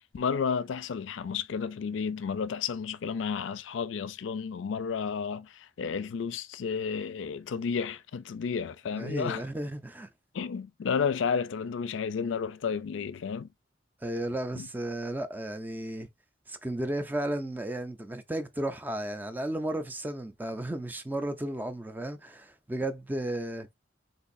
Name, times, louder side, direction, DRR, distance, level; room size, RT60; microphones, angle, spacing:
voice 1, 0.1-9.4 10.3-13.5 14.5-14.7, left 6 dB, 90° left, 0.4 m, -32 dB
voice 2, 8.9-10.1 14.0-16.1 16.5-23.7, right 1 dB, 10° right, 0.4 m, -34 dB
3.9 x 2.6 x 2.5 m
head